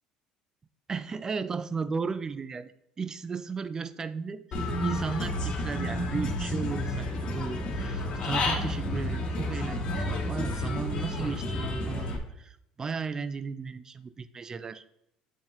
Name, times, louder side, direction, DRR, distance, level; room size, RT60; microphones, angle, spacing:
voice 1, 0.9-2.7 3.0-4.4 4.8-14.8, right 5 dB, 25° right, 14 dB, 0.3 m, -35 dB
Human voice / Bird, 4.5-12.2, left 1 dB, 45° left, 1.4 m, -31 dB
8.5 x 4.1 x 2.9 m, 0.77 s
cardioid pair, 105°, 2 cm